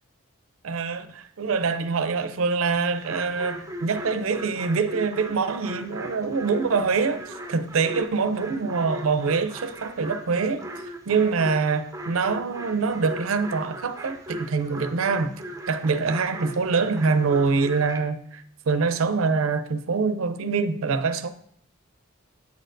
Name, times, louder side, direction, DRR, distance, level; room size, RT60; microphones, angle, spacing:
voice 1, 0.6-10.7 11.1-15.3 15.7-21.3, right 4 dB, 75° right, 0.5 m, -25 dB
sound 1, 3.0-18.0, right 1 dB, 15° right, 0.6 m, -39 dB
8.3 x 6.5 x 2.6 m
head